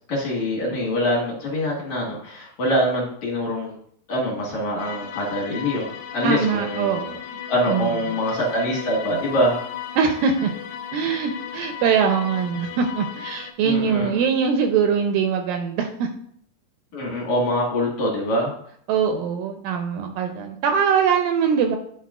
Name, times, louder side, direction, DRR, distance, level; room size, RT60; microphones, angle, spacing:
voice 1, 0.1-3.8 4.1-7.0 7.5-9.6 13.6-14.2 16.9-18.5, equal, 60° left, -4 dB, 2.5 m, -24 dB
sound 1, 4.8-13.5, left 9 dB, 75° left, 2.3 m, -35 dB
voice 2, 6.2-7.2 7.7-7.9 10.0-10.5 10.9-16.1 18.9-21.8, right 6 dB, 80° right, 5 dB, 2.1 m, -22 dB
10.5 x 4.2 x 2.4 m, 0.65 s
omnidirectional pair, 4.3 m